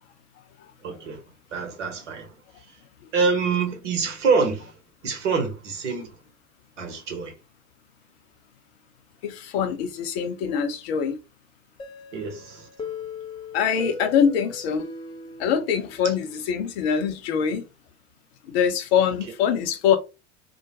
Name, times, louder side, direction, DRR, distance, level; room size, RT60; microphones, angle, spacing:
voice 1, 0.8-1.2 1.5-2.3 3.1-4.7 5.0-6.2 6.8-7.3 12.1-12.9, right 5 dB, 70° right, 0.9 m, -26 dB
voice 2, 9.2-11.2 13.5-14.9 15.4-17.6 18.5-20.0, left 7 dB, 55° left, 0.7 m, -24 dB
sound 1, 11.8-16.5, left 4 dB, 15° left, 0.4 m, -39 dB
2.3 x 2.1 x 2.7 m
figure-of-eight pair, 75°, 38 cm